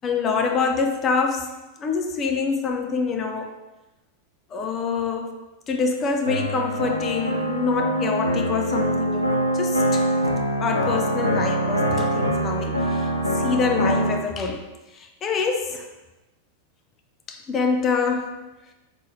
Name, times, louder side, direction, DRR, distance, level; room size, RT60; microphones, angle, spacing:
voice 1, 0.0-1.5 1.8-3.5 4.5-5.4 5.7-10.1 10.6-13.1 13.4-14.7 14.9-15.8 17.3-18.4, left 5 dB, 25° left, 4 dB, 0.4 m, -25 dB
sound 1, 6.3-14.2, right 1 dB, 85° right, 0.4 m, -24 dB
2.6 x 2.6 x 4.2 m, 1.0 s
figure-of-eight pair, 90°, 0 cm